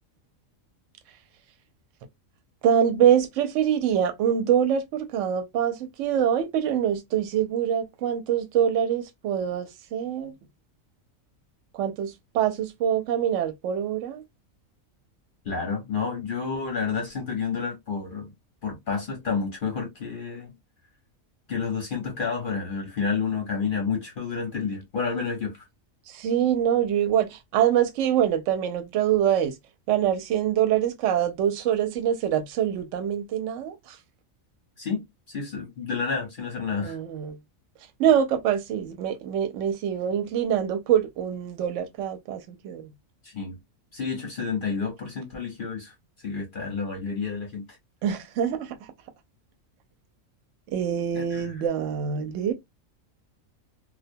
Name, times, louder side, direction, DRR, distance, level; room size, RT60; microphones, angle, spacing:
voice 1, 2.6-10.3 11.7-14.2 26.1-29.6 29.9-34.0 36.8-37.4 38.0-42.9 48.0-48.8 50.7-52.5, right 9 dB, 70° right, 0.9 m, -25 dB
voice 2, 15.4-18.3 18.6-20.5 21.5-25.5 34.8-37.0 43.2-43.6 43.9-47.6 51.2-51.5, left 5 dB, 50° left, 0.7 m, -30 dB
2.2 x 2.2 x 2.5 m
omnidirectional pair, 1.4 m